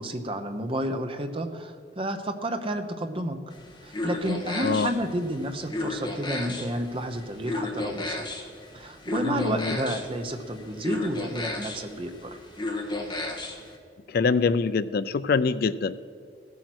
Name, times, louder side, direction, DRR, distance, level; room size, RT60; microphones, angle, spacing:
voice 1, 0.0-3.4 3.8-8.3 8.7-12.4, right 1 dB, 30° right, 7 dB, 0.9 m, -31 dB
sound 1, 3.5-13.7, left 2 dB, 25° left, 1.5 m, -34 dB
voice 2, 9.3-9.8 14.1-16.0, left 4 dB, 55° left, 15 dB, 0.4 m, -24 dB
15.5 x 8.4 x 6.2 m, 2.2 s
head